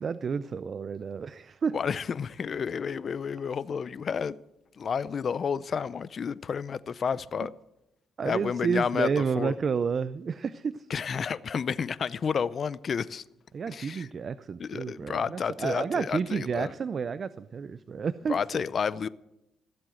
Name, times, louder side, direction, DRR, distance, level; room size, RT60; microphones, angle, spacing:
voice 1, 0.0-1.8 7.4-7.5 8.2-10.9 13.5-18.4, right 6 dB, 45° right, 0.4 m, -30 dB
voice 2, 1.7-4.4 4.8-7.5 8.2-9.6 10.9-13.2 13.7-14.1 14.6-16.7 18.3-19.1, left 6 dB, 50° left, 0.5 m, -31 dB
15.5 x 7.7 x 7.9 m
cardioid pair, 90°, 0 cm